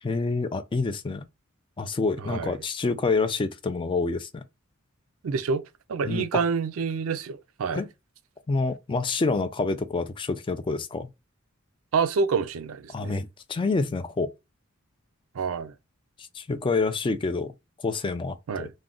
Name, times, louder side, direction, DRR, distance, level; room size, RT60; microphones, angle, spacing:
voice 1, 0.0-1.3 1.8-4.4 6.0-6.4 7.7-7.9 8.5-11.1 12.9-14.3 16.3-17.5 17.8-18.7, left 3 dB, 25° left, 0.3 m, -27 dB
voice 2, 2.2-2.5 5.2-5.6 5.9-7.8 11.9-13.2 15.3-15.7 18.5-18.7, right 5 dB, 75° right, 0.4 m, -27 dB
2.4 x 2.1 x 3.6 m
head